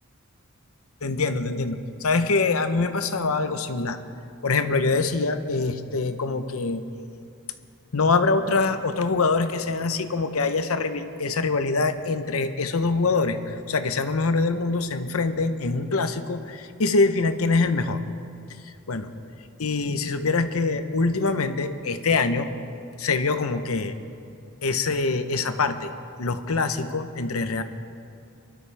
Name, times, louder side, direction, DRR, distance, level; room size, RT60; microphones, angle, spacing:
voice 1, 1.0-4.0 4.4-6.8 7.9-18.0 18.6-19.1 19.6-22.5 23.0-23.9 24.6-25.9 26.2-27.6, left 3 dB, 85° left, 9 dB, 0.8 m, -24 dB
24.0 x 12.5 x 3.4 m, 2.5 s
head